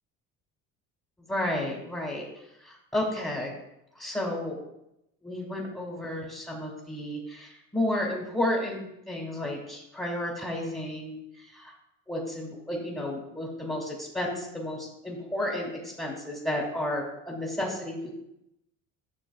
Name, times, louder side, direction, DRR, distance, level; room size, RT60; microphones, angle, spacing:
voice 1, 1.3-3.6 4.0-4.6 5.2-11.7 12.1-18.1, left 1 dB, 10° left, -3 dB, 2.0 m, -32 dB
10.5 x 6.3 x 2.4 m, 0.84 s
supercardioid pair, 75°, 35 cm